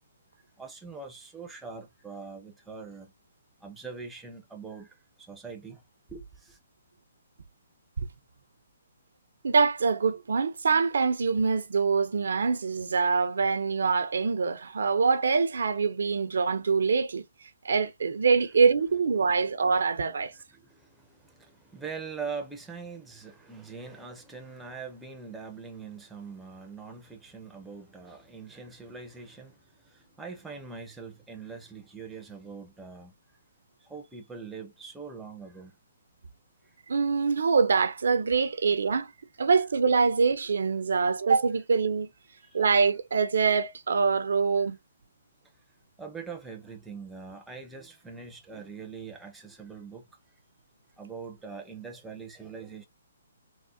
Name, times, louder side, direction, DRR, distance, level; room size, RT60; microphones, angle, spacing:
voice 1, 0.6-3.1 3.6-5.8 6.1-6.6 20.3-29.6 29.8-33.1 33.8-35.7 42.4-42.6 46.0-50.1 51.0-52.9, right 5 dB, 5° right, 0.5 m, -42 dB
voice 2, 9.4-17.2 17.6-20.3 36.9-39.1 39.4-42.1 42.5-44.8, right 5 dB, 80° right, 0.5 m, -24 dB
3.6 x 2.1 x 2.4 m
hypercardioid pair, 155°, 0 cm